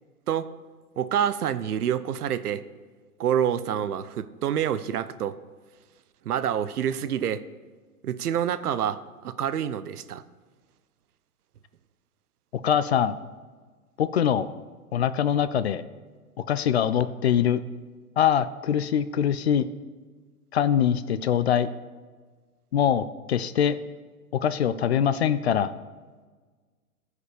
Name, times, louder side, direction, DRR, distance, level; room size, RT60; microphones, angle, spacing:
voice 1, 1.0-2.6 3.2-5.4 6.3-7.4 8.0-10.2, right 9 dB, 80° right, 14 dB, 0.7 m, -27 dB
voice 2, 12.6-13.2 14.0-14.5 14.9-15.8 16.5-17.6 18.2-19.6 20.5-21.7 22.7-23.8 24.4-25.7, left 9 dB, 50° left, 14 dB, 0.4 m, -23 dB
14.5 x 5.0 x 5.0 m, 1.4 s
hypercardioid pair, 150°, 45 cm